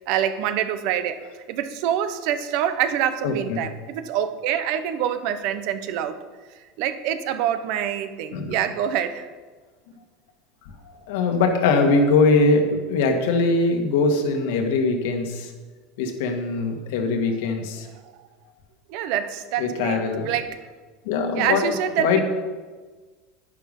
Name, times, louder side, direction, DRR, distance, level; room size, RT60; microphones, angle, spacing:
voice 1, 0.1-1.2 1.5-6.2 6.8-9.2 18.9-20.6 21.3-22.2, right 10 dB, 55° right, 10 dB, 0.9 m, -26 dB
voice 2, 3.2-3.6 8.3-8.6 10.8-15.5 16.0-17.9 19.6-20.3 21.1-22.2, left 3 dB, 75° left, 4 dB, 1.8 m, -22 dB
10.5 x 10.0 x 5.4 m, 1.4 s
supercardioid pair, 150°, 0 cm